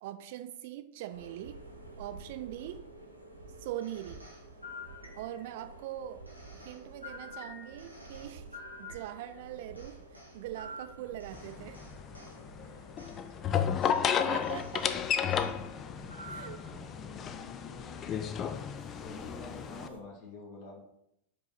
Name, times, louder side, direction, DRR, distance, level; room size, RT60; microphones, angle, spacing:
voice 1, 0.0-1.6 2.0-2.8 3.6-4.3 5.1-6.2 6.5-8.5 8.8-11.8 14.2-14.9 16.3-16.6, right 12 dB, 50° right, 9 dB, 0.5 m, -42 dB
sound 1, 1.1-20.0, right 2 dB, 85° right, 1.1 m, -52 dB
sound 2, 3.8-5.6 6.2-9.4 9.7-12.4 13.0-13.2 13.8-14.0 14.4-15.5 16.1-16.7, left 1 dB, 90° left, 1.2 m, -48 dB
sound 3, 11.3-19.9, left 8 dB, 30° left, 0.4 m, -33 dB
voice 2, 13.0-13.5 16.6-17.4 19.0-20.8, left 2 dB, 50° left, -1 dB, 1.6 m, -49 dB
5.3 x 4.7 x 4.1 m, 0.76 s
figure-of-eight pair, 90°, 0 cm